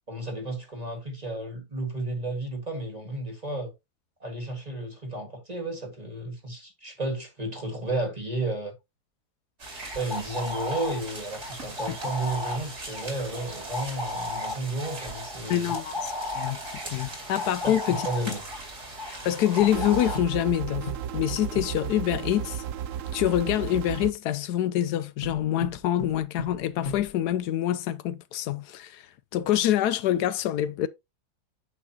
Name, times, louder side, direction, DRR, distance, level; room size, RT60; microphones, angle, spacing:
voice 1, 0.1-3.7 4.2-8.7 9.8-15.7 17.6-18.4, right 2 dB, 25° right, 1.8 m, -33 dB
sound 1, 9.6-20.2, left 1 dB, 45° right, 2.7 m, -35 dB
voice 2, 15.5-16.6 16.8-18.1 19.1-22.6 23.1-30.9, left 12 dB, 80° left, 1.1 m, -26 dB
sound 2, 19.6-20.6 20.9-21.9 25.2-27.5, left 3 dB, 40° left, 1.9 m, -39 dB
sound 3, 19.7-24.1, right 10 dB, 65° right, 0.9 m, -34 dB
8.6 x 6.0 x 2.8 m
omnidirectional pair, 1.7 m